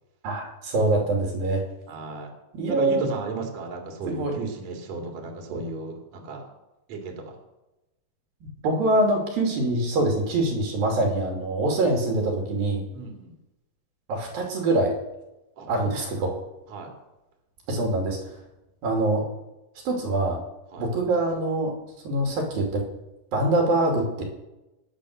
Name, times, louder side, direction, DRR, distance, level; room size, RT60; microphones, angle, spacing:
voice 1, 0.2-1.6 2.5-3.2 4.1-4.4 5.5-5.6 8.6-12.9 14.1-14.9 15.7-16.3 17.7-18.2 18.8-19.3 19.9-20.4 20.8-21.7 22.0-22.9 23.3-24.2, right 2 dB, 70° right, 1 dB, 4.2 m, -24 dB
voice 2, 1.9-2.3 2.7-6.5 6.9-7.4 12.9-13.3 15.6-15.9 16.7-16.9 20.7-20.9, right 3 dB, 45° right, 1 dB, 3.6 m, -34 dB
20.0 x 9.3 x 6.4 m, 0.98 s
omnidirectional pair, 4.4 m